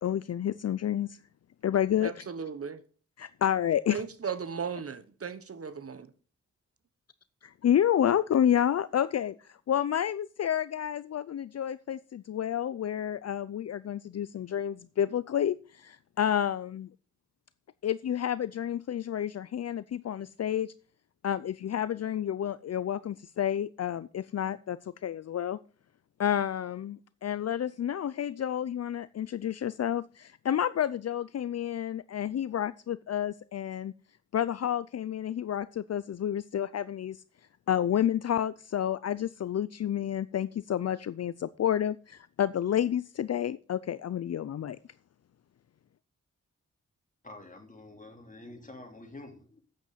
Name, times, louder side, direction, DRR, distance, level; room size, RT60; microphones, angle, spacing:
voice 1, 0.0-1.2 1.6-2.2 3.4-4.0 7.4-16.9 17.8-20.7 21.2-25.6 26.2-33.9 34.3-37.2 37.7-44.8, left 10 dB, 55° left, 0.5 m, -30 dB
voice 2, 2.0-2.8 3.9-6.1, right 6 dB, 50° right, 1.0 m, -36 dB
voice 3, 47.2-49.6, left 2 dB, 25° left, 3.3 m, -47 dB
9.0 x 8.0 x 6.8 m
cardioid pair, 70°, 30 cm